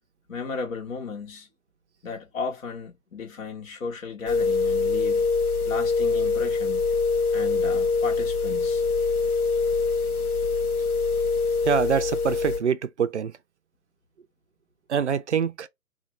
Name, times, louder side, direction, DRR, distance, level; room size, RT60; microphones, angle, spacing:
voice 1, 0.3-1.5 2.0-5.3 5.6-6.8 7.3-8.8, left 5 dB, 60° left, 1.2 m, -34 dB
sound 1, 4.3-12.6, left 4 dB, 75° left, 0.8 m, -24 dB
voice 2, 11.6-13.4 14.9-15.7, right 7 dB, 55° right, 0.4 m, -25 dB
2.7 x 2.4 x 3.1 m
figure-of-eight pair, 150°, 44 cm